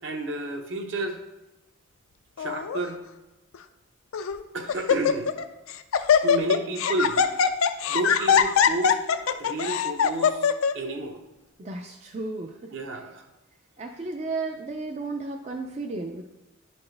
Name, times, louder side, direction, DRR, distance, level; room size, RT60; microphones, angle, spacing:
voice 1, 0.0-1.2 2.4-3.0 4.5-5.3 6.2-7.3 7.9-9.0 9.4-10.5 10.7-11.2 12.7-13.2, right 2 dB, 55° right, 5 dB, 0.8 m, -31 dB
Laughter, 2.4-2.8 3.5-3.6 4.1-4.4 4.7-5.4 5.7-10.7, left 7 dB, 70° left, 0.4 m, -22 dB
voice 2, 11.6-13.0 13.8-16.3, right 3 dB, 30° right, 3 dB, 0.4 m, -34 dB
10.5 x 4.2 x 3.3 m, 1.0 s
head